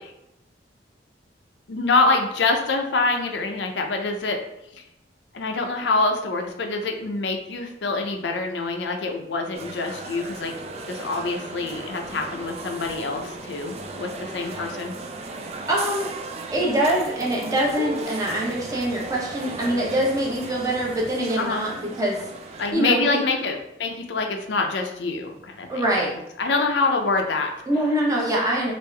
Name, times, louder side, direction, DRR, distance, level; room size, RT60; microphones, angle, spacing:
voice 1, 1.7-4.4 4.7-4.8 5.3-10.5 10.9-14.9 21.4-21.7 22.6-25.7 25.9-26.0 26.4-27.5, left 3 dB, 75° left, 3 dB, 0.5 m, -25 dB
sound 1, 9.5-22.7, right 3 dB, 35° right, 0.3 m, -36 dB
voice 2, 15.7-16.1 16.5-22.3 22.7-23.2 25.7-26.1 27.7-28.7, right 1 dB, 20° right, -3 dB, 0.8 m, -24 dB
3.4 x 2.5 x 3.3 m, 0.84 s
head